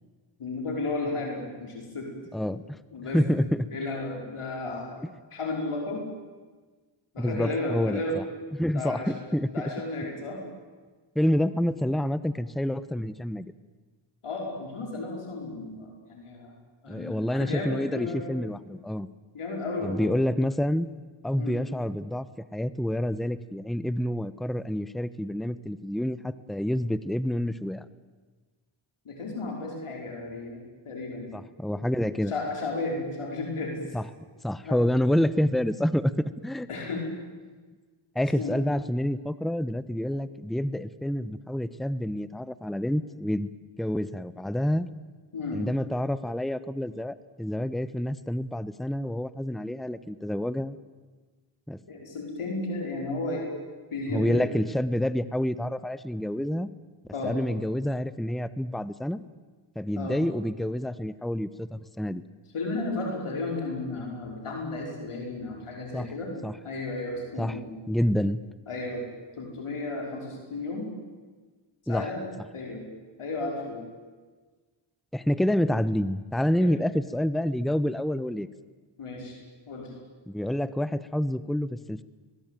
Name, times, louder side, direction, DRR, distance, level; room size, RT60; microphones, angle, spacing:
voice 1, 0.4-2.1 2.9-3.2 3.7-5.0 5.3-6.0 7.1-8.2 8.7-9.1 9.5-10.4 14.2-16.5 16.8-18.3 19.3-20.1 21.4-21.6 29.1-31.3 32.3-33.8 34.7-34.8 36.7-37.0 38.4-38.6 45.3-45.6 51.9-53.5 53.9-54.4 57.1-57.3 60.0-60.2 62.5-66.3 66.6-67.7 68.7-69.0 69.4-70.9 71.9-72.2 72.5-72.8 73.2-73.8 76.6-76.7 79.0-79.4 79.7-79.9, left 2 dB, 85° left, 0 dB, 5.3 m, -33 dB
voice 2, 2.3-2.8 3.1-3.7 5.0-5.1 7.2-8.2 8.5-9.5 11.1-13.5 16.9-19.1 19.8-20.9 21.2-22.3 22.5-27.8 31.3-32.3 33.9-34.1 34.4-36.7 38.1-43.5 43.8-44.9 45.5-50.8 51.7-51.8 54.1-56.7 57.2-59.2 59.7-62.2 65.9-66.1 66.4-66.6 67.4-67.6 67.9-68.4 71.9-72.1 75.1-78.5 80.3-82.0, equal, ahead, 14 dB, 1.0 m, -28 dB
22.0 x 21.5 x 9.2 m, 1.4 s
cardioid pair, 50°, 49 cm